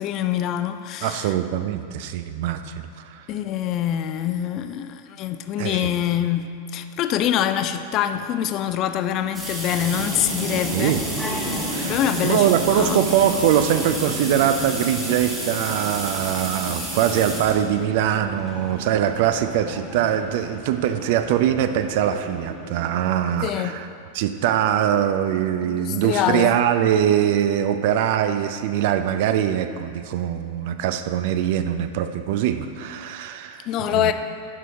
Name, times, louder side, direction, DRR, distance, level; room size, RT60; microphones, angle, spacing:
voice 1, 0.0-1.3 3.3-11.0 11.8-13.1 23.4-23.8 25.6-26.6 33.7-34.1, left 10 dB, 35° left, 0.3 m, -25 dB
voice 2, 1.0-3.3 5.6-5.9 10.7-11.0 11.7-12.0 12.2-23.9 24.1-34.1, right 10 dB, 50° right, 0.3 m, -22 dB
sound 1, 9.3-17.6 18.5-18.6 19.8-19.9 20.3-20.4 20.6-20.7, right 1 dB, 20° right, 1.5 m, -32 dB
sound 2, 9.7-23.6, right 1 dB, ahead, 1.4 m, -34 dB
11.0 x 4.7 x 2.8 m
figure-of-eight pair, 90°, 0 cm